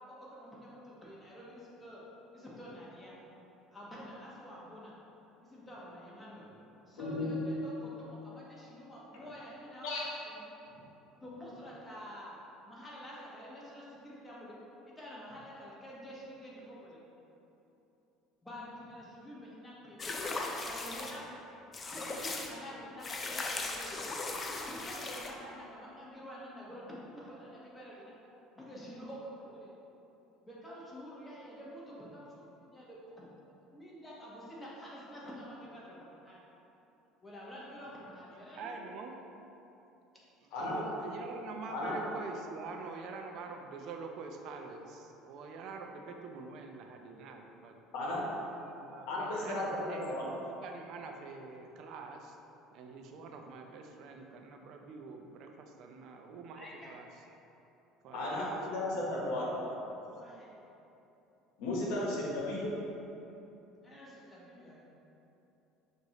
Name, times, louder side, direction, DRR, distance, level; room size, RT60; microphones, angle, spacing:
voice 1, 0.0-2.0 2.3-3.1 3.7-4.9 5.4-6.5 6.9-9.9 10.3-10.4 11.2-12.3 12.7-14.6 15.0-17.0 18.4-20.3 20.6-21.4 21.9-24.1 24.7-28.1 28.5-29.7 30.4-33.3 33.7-36.4 37.2-38.7 56.5-56.9 60.1-60.5 63.8-64.8, equal, 15° left, -6 dB, 1.2 m, -48 dB
voice 2, 7.0-7.4 9.8-10.0 10.7-10.8 40.5-40.8 41.7-42.0 47.9-48.2 49.1-50.3 58.1-59.5 61.6-62.8, left 2 dB, 75° left, -4 dB, 1.0 m, -34 dB
sound 1, 20.0-21.2 21.7-22.5 23.0-25.3, left 3 dB, 30° left, 0.5 m, -38 dB
voice 3, 38.6-39.1 40.6-47.7 48.5-52.4 52.7-57.1 58.0-59.8 61.7-62.3, right 4 dB, 60° right, 3 dB, 0.5 m, -46 dB
6.4 x 2.6 x 3.0 m, 3.0 s
supercardioid pair, 90°, 0 cm